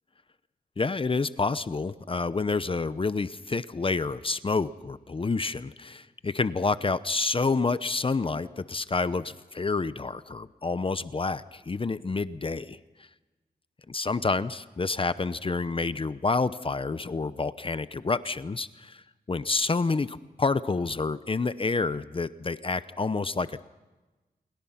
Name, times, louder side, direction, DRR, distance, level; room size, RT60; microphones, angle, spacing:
voice 1, 0.8-12.8 13.9-19.0 19.3-23.7, left 3 dB, 30° left, 14 dB, 0.8 m, -28 dB
28.5 x 22.5 x 5.8 m, 1.2 s
cardioid pair, 80°, 17 cm